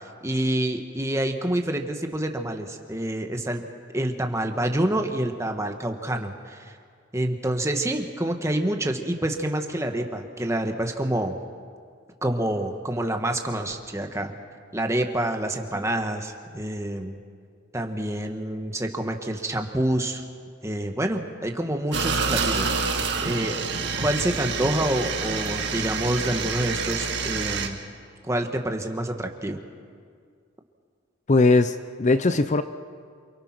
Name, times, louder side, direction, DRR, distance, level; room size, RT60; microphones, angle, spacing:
voice 1, 0.2-3.6 3.9-6.6 7.1-11.4 12.2-14.3 14.7-17.2 17.7-20.2 20.6-22.7 23.2-23.6 24.0-27.8 28.3-29.6, right 1 dB, 15° right, 4 dB, 1.6 m, -27 dB
sound 1, 21.9-27.7, right 4 dB, 65° right, 2.1 m, -27 dB
voice 2, 31.3-32.6, left 3 dB, 40° left, 11 dB, 0.6 m, -19 dB
28.0 x 24.0 x 6.0 m, 2.1 s
head